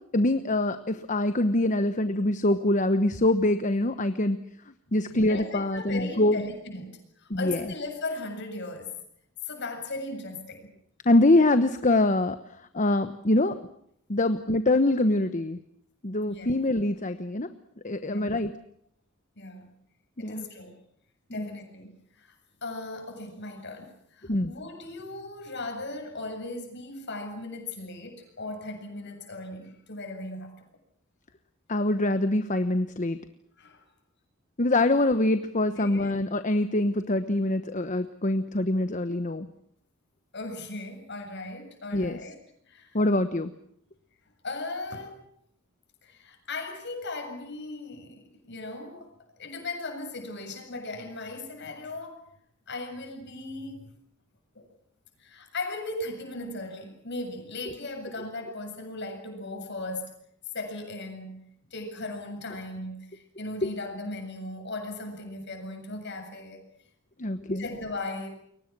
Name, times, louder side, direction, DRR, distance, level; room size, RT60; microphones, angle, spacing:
voice 1, 0.1-4.4 4.9-6.4 7.3-7.6 11.1-12.4 12.7-13.5 14.1-15.6 16.0-17.5 17.8-18.5 20.2-20.4 21.4-21.5 24.3-24.5 31.7-33.2 34.6-39.5 41.9-42.2 42.9-43.5 67.2-67.6, left 2 dB, 35° left, 10 dB, 1.1 m, -24 dB
voice 2, 5.3-9.0 9.4-10.7 16.3-16.5 18.0-18.3 19.4-19.8 20.2-20.8 21.3-30.7 33.6-33.8 34.8-34.9 35.7-36.1 40.3-42.4 42.7-43.0 44.4-45.2 46.0-52.2 52.7-53.9 54.5-54.7 55.2-60.2 60.5-61.4 61.7-66.6 67.5-68.3, left 2 dB, 55° left, 5 dB, 7.5 m, -37 dB
29.5 x 23.5 x 6.1 m, 0.69 s
head